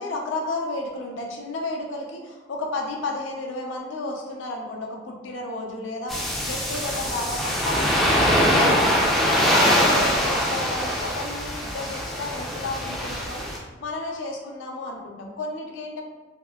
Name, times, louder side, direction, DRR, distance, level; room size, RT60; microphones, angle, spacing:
voice 1, 0.0-8.9 9.1-13.5 13.8-16.0, left 2 dB, 75° left, 0 dB, 0.5 m, -32 dB
sound 1, 6.1-13.6, equal, ahead, 0.3 m, -23 dB
3.5 x 2.1 x 2.2 m, 1.3 s
head